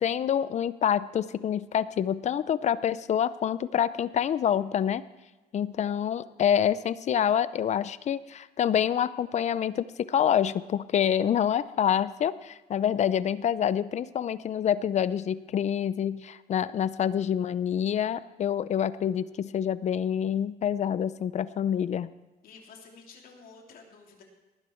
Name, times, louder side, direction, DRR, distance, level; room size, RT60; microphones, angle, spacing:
voice 1, 0.0-5.0 5.5-22.1, left 9 dB, 45° left, 17 dB, 0.5 m, -27 dB
voice 2, 22.4-24.2, left 4 dB, 60° left, 1 dB, 2.9 m, -51 dB
19.0 x 10.0 x 4.5 m, 1.1 s
cardioid pair, 110°, 17 cm